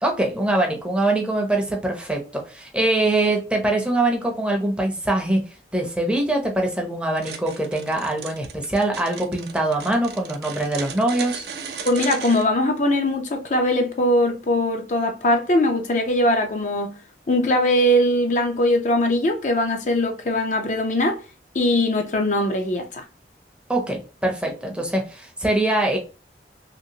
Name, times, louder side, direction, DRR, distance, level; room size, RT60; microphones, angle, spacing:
voice 1, 0.0-5.4 5.7-11.5 23.7-26.0, right 2 dB, 5° right, 0.6 m, -23 dB
sound 1, 7.2-12.4, right 7 dB, 65° right, 0.5 m, -36 dB
voice 2, 11.9-16.9 17.3-21.2 21.5-23.0, left 1 dB, 45° left, 0.5 m, -21 dB
2.9 x 2.9 x 2.7 m
head